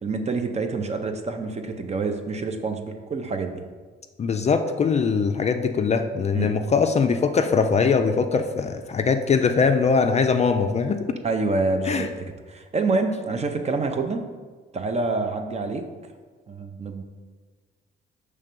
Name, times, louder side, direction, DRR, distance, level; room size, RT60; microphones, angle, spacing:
voice 1, 0.0-3.6 6.3-6.5 11.2-12.1 12.5-14.2 14.7-15.8 16.5-17.0, right 3 dB, 35° right, 5 dB, 0.6 m, -27 dB
voice 2, 4.2-11.1 11.9-12.1, left 5 dB, 35° left, 6 dB, 0.4 m, -21 dB
5.5 x 3.2 x 5.3 m, 1.5 s
cardioid pair, 90°, 20 cm